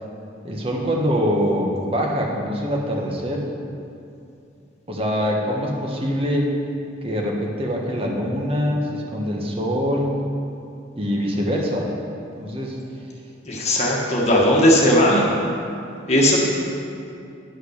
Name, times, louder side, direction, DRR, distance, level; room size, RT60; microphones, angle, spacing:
voice 1, 0.4-3.5 4.9-6.5 7.0-10.1 11.0-11.9 12.4-12.8, equal, 30° right, 0 dB, 1.2 m, -24 dB
voice 2, 13.4-15.3 16.1-16.4, left 1 dB, 35° left, -3 dB, 1.7 m, -17 dB
10.0 x 5.7 x 6.5 m, 2.6 s
head